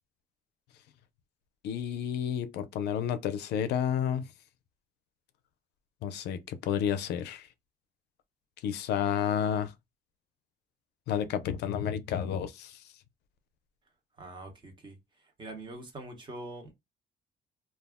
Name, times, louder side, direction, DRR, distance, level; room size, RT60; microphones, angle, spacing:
voice 1, 1.6-4.3 6.0-7.5 8.6-9.7 11.1-12.8, left 9 dB, 85° left, 0.4 m, -31 dB
voice 2, 14.2-15.0 15.4-16.7, right 2 dB, 30° right, 0.9 m, -43 dB
2.3 x 2.0 x 3.4 m
cardioid pair, 140°, 17 cm